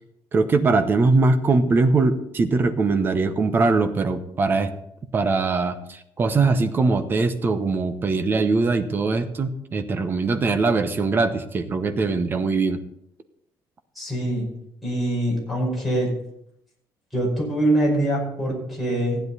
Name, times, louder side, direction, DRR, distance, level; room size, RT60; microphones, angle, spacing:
voice 1, 0.3-4.7 5.1-12.8, right 3 dB, 25° right, 9 dB, 0.9 m, -21 dB
voice 2, 14.0-14.5 14.8-16.1 17.1-19.2, right 1 dB, ahead, -3 dB, 5.2 m, -23 dB
15.0 x 10.0 x 4.1 m, 0.75 s
cardioid pair, 170°, 8 cm